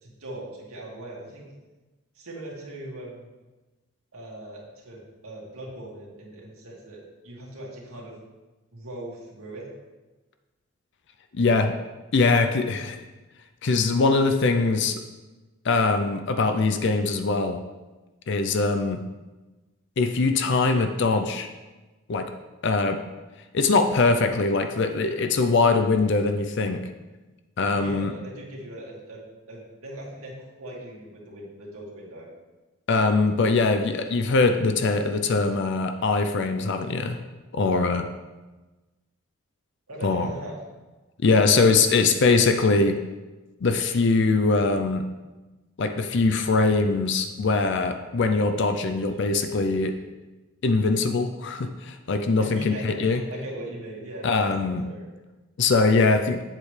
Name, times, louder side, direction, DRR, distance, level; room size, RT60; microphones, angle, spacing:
voice 1, 0.0-1.5 2.1-3.3 4.1-7.0 7.2-8.2 8.7-9.7 27.7-29.2 29.5-32.3 39.9-40.6 52.4-55.0, right 1 dB, 90° right, -4 dB, 2.2 m, -39 dB
voice 2, 11.3-11.8 12.1-13.0 13.6-15.0 15.6-17.6 18.3-19.0 20.0-21.5 22.1-22.3 22.6-23.0 23.5-26.9 27.6-28.1 32.9-37.2 37.5-38.1 40.0-40.3 41.2-43.0 43.6-45.0 45.8-49.9 50.6-53.2 54.2-54.9 55.6-56.4, left 3 dB, 55° left, 7 dB, 0.5 m, -22 dB
8.5 x 7.4 x 3.2 m, 1.2 s
head